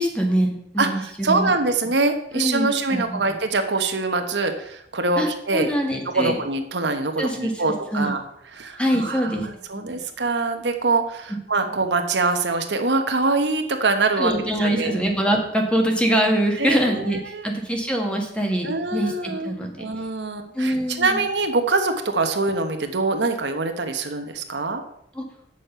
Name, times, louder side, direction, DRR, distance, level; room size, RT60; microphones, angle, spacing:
voice 1, 0.0-1.5 2.3-3.3 5.2-6.4 7.2-7.6 7.9-8.1 8.8-9.5 9.7-9.8 11.3-11.4 14.2-19.8 20.5-21.2 25.1-25.2, right 1 dB, 5° left, 2 dB, 1.4 m, -24 dB
voice 2, 1.2-5.7 6.1-8.2 8.6-14.3 14.6-15.0 16.6-17.5 18.6-24.8, right 3 dB, 75° right, 6 dB, 1.1 m, -24 dB
8.5 x 6.5 x 5.6 m, 0.75 s
head